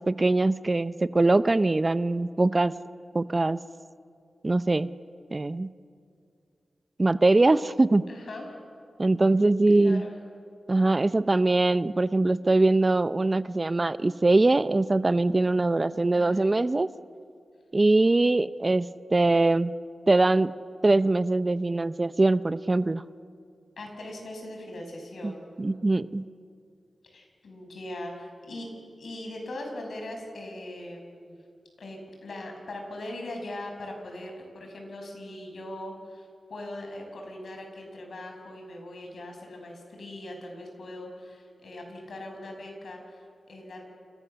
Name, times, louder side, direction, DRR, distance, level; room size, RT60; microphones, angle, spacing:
voice 1, 0.0-2.7 3.1-3.6 4.4-4.9 5.3-5.7 7.0-8.0 9.0-10.0 10.7-16.9 17.7-19.7 20.1-20.5 20.8-23.0 25.2-25.3 25.6-26.3, right 2 dB, 30° right, 14 dB, 0.7 m, -22 dB
voice 2, 8.1-8.6 9.7-10.2 15.9-16.5 23.8-26.1 27.0-31.4 31.8-43.8, left 1 dB, 75° left, 3 dB, 6.6 m, -40 dB
29.0 x 28.5 x 7.0 m, 2.4 s
wide cardioid pair, 80°, 0 cm